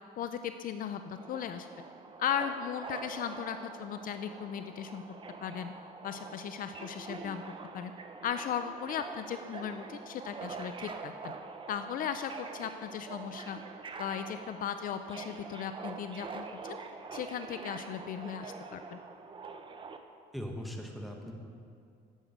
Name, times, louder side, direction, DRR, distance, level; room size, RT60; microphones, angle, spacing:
voice 1, 0.2-1.7 2.2-5.0 5.4-5.7 6.0-7.4 7.7-7.9 8.2-11.3 11.7-13.6 14.0-16.8 17.1-19.0, left 8 dB, 55° left, 9 dB, 0.4 m, -37 dB
Subway metro underground, 1.2-20.0, right 4 dB, 30° right, 0.7 m, -45 dB
voice 2, 20.3-21.3, equal, ahead, 1 dB, 1.2 m, -39 dB
10.0 x 7.6 x 5.2 m, 2.3 s
cardioid pair, 110°, 17 cm